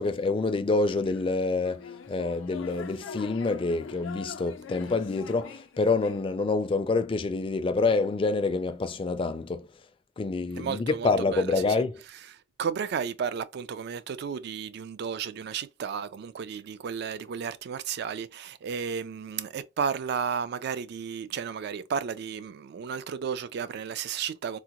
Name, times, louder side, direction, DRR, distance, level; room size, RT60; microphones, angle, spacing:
voice 1, 0.0-9.7 10.2-11.9, left 3 dB, 30° left, 0.3 m, -27 dB
sound 1, 0.9-6.2, left 5 dB, 85° left, 0.4 m, -43 dB
voice 2, 10.5-11.8 12.3-24.6, right 7 dB, 60° right, 0.3 m, -33 dB
3.6 x 2.1 x 2.9 m
head